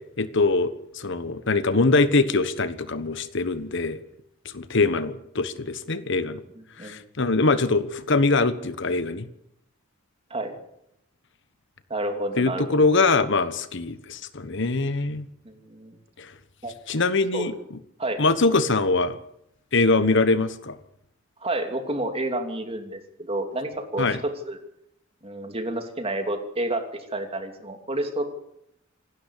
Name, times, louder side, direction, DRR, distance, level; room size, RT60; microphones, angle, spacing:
voice 1, 0.2-4.0 4.5-6.4 6.8-9.3 12.4-15.3 16.2-16.3 16.9-17.5 18.2-19.2 19.7-20.8 24.0-24.2, left 3 dB, 60° left, 13 dB, 1.3 m, -23 dB
voice 2, 6.6-7.0 10.3-10.6 11.9-12.9 15.4-16.0 16.6-16.7 17.3-17.6 18.0-18.2 21.4-24.6 25.2-28.2, right 1 dB, 30° right, 5 dB, 2.9 m, -30 dB
27.0 x 12.5 x 8.5 m, 0.77 s
head